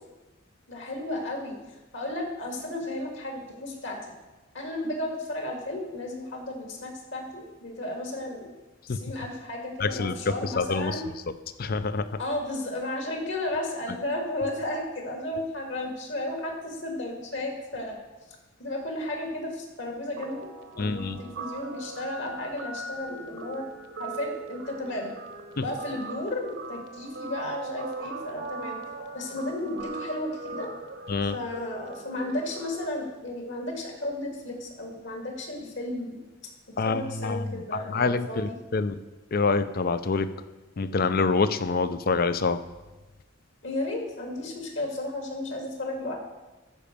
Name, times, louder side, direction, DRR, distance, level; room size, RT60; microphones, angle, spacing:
voice 1, 0.7-1.6 1.9-4.1 4.5-8.6 8.9-11.0 12.2-18.0 18.6-20.5 20.7-23.6 24.0-25.1 25.6-28.8 29.1-30.7 31.3-36.2 36.9-38.6 43.6-46.2, left 1 dB, 65° left, 2 dB, 2.4 m, -33 dB
voice 2, 9.8-11.0 11.6-12.1 20.8-21.2 25.6-25.7 31.1-31.4 36.8-39.0 39.3-40.3 40.8-42.6, left 4 dB, 45° left, 12 dB, 0.5 m, -26 dB
Guitar, 20.2-32.9, right 3 dB, 60° right, 1.0 m, -40 dB
14.0 x 5.0 x 6.9 m, 1.1 s
head